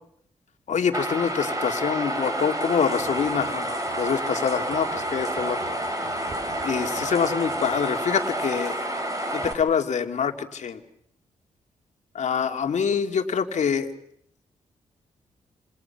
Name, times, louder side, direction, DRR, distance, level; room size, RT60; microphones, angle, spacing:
voice 1, 0.7-5.8 6.6-8.8 9.3-10.8 12.1-13.9, left 6 dB, 60° left, 6 dB, 2.6 m, -25 dB
sound 1, 0.9-9.5, right 1 dB, 25° right, 6.1 m, -29 dB
sound 2, 3.0-8.0, right 6 dB, 65° right, 4.1 m, -44 dB
29.5 x 27.5 x 6.0 m, 0.69 s
hypercardioid pair, 45°, 14 cm